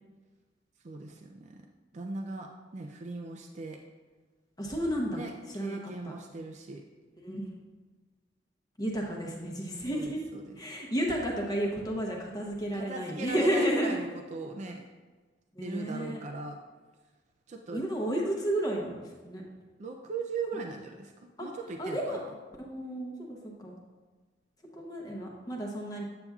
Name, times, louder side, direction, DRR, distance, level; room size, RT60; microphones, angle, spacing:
voice 1, 0.8-1.7 1.9-3.8 5.1-6.8 9.9-10.6 12.7-14.8 15.6-16.6 17.5-17.8 19.8-22.3, right 3 dB, 40° right, 3 dB, 0.4 m, -39 dB
voice 2, 4.6-5.2 5.5-6.1 7.2-7.5 8.8-10.2 10.6-14.0 15.5-16.2 17.7-19.4 20.5-20.6 21.4-21.5 21.8-22.2 22.6-23.8 24.7-26.0, equal, 20° left, -2 dB, 0.8 m, -32 dB
8.5 x 6.7 x 2.3 m, 1.3 s
head